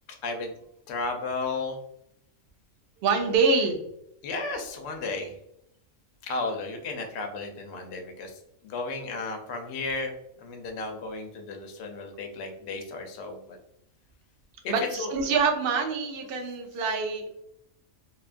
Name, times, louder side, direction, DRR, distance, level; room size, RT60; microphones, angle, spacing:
voice 1, 0.2-0.5 0.9-1.8 4.2-5.3 6.2-8.3 8.6-13.6 14.6-15.1, left 3 dB, 65° left, 4 dB, 0.8 m, -34 dB
voice 2, 3.0-3.8 14.7-17.4, right 4 dB, 60° right, 4 dB, 0.6 m, -25 dB
2.7 x 2.3 x 2.4 m, 0.75 s
omnidirectional pair, 1.4 m